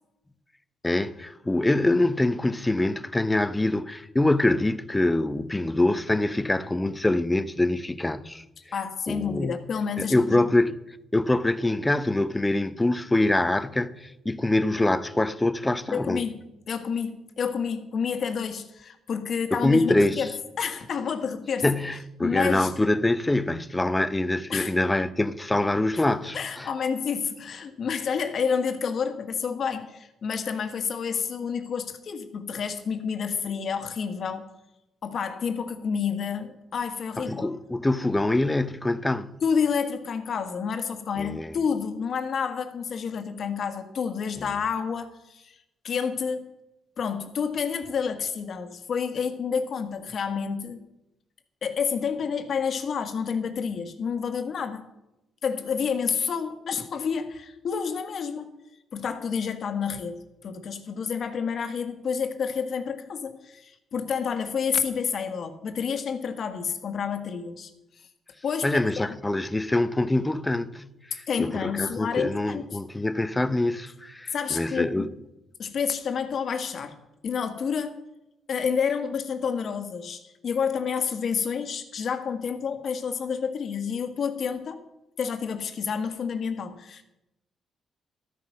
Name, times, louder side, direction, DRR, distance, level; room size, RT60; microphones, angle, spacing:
voice 1, 0.8-8.4 9.1-9.5 10.0-10.8 11.1-16.2 19.5-20.2 21.6-26.7 37.2-39.3 41.2-41.5 44.4-44.5 68.6-70.8 71.1-75.1, left 2 dB, 15° left, 0.7 m, -24 dB
voice 2, 8.7-10.4 15.9-16.4 16.7-21.7 22.2-22.7 24.5-24.7 26.3-34.5 35.0-37.5 39.4-45.5 45.8-46.4 47.0-50.8 51.6-54.9 55.4-58.5 58.9-67.7 68.4-69.1 71.3-72.7 74.3-75.1 75.6-77.0 77.2-78.0 78.5-84.8 85.2-87.0, left 6 dB, 55° left, 1.5 m, -29 dB
12.5 x 9.3 x 5.8 m
cardioid pair, 90°, 0 cm